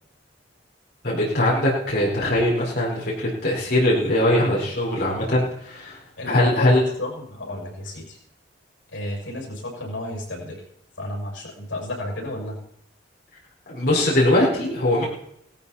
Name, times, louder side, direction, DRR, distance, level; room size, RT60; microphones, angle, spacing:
voice 1, 1.0-6.0 6.2-6.8 13.7-15.0, left 1 dB, 55° left, -5 dB, 4.8 m, -21 dB
voice 2, 6.2-8.2 8.9-10.6 11.0-12.6, left 1 dB, 85° left, 0 dB, 6.6 m, -32 dB
18.0 x 13.5 x 4.3 m, 0.76 s
head